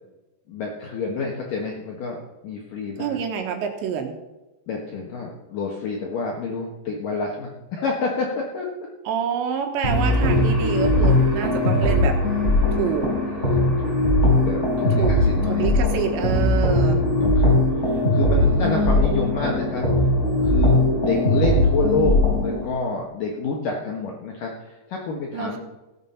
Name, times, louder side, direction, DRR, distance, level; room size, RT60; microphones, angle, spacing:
voice 1, 0.5-3.2 4.7-8.7 13.1-14.0 14.3-15.7 16.7-19.9 20.4-25.6, left 4 dB, 60° left, -1 dB, 2.6 m, -28 dB
voice 2, 3.0-4.2 9.1-12.2 12.7-13.1 15.0-15.2 15.5-17.0 18.4-19.0 25.3-25.6, right 7 dB, 80° right, 4 dB, 3.5 m, -27 dB
sound 1, 9.8-22.6, left 1 dB, 15° left, 5.6 m, -20 dB
16.5 x 8.1 x 5.7 m, 1.0 s
omnidirectional pair, 5.1 m